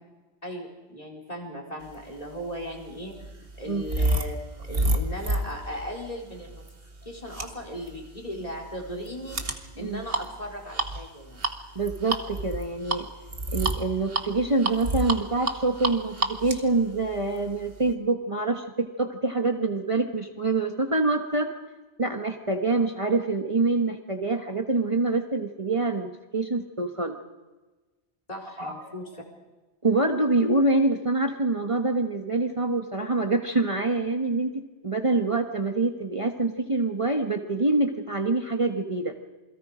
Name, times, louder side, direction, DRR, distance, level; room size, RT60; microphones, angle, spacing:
voice 1, 0.4-6.6 7.0-11.4 28.3-29.1, equal, 35° left, 2 dB, 4.4 m, -37 dB
sound 1, 2.3-17.9, right 2 dB, 60° right, 1.9 m, -31 dB
voice 2, 11.7-13.1 13.5-21.5 22.0-27.2 28.6-28.7 29.8-39.1, right 3 dB, 30° right, 3 dB, 1.4 m, -26 dB
28.0 x 22.0 x 5.1 m, 1.2 s
omnidirectional pair, 1.1 m